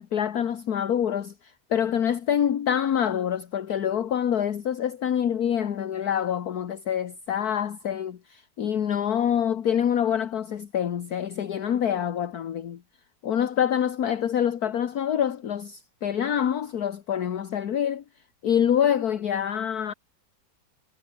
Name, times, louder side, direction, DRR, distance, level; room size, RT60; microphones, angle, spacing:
voice 1, 0.0-12.8 13.2-18.0 18.4-19.9, left 9 dB, 60° left, 1.6 m, -26 dB
omnidirectional pair, 1.9 m